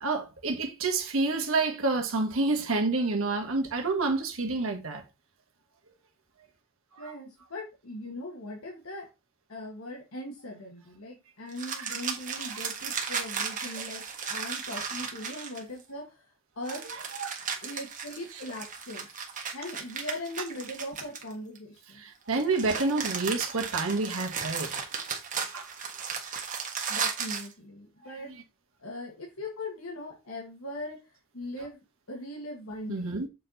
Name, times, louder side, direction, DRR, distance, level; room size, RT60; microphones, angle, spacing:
voice 1, 0.0-5.0 11.8-12.0 12.6-12.7 17.2-17.4 22.0-24.7 25.1-25.7 32.9-33.3, right 3 dB, 65° right, 1.6 m, -29 dB
voice 2, 7.0-9.1 9.5-14.0 14.3-16.8 17.6-19.1 19.5-22.0 26.9-28.3 28.8-31.0 31.3-33.1, left 1 dB, 70° left, 1.9 m, -40 dB
sound 1, 11.5-15.8 16.6-21.6 22.3-27.5, right 6 dB, 35° right, 1.4 m, -35 dB
7.4 x 4.5 x 4.1 m
head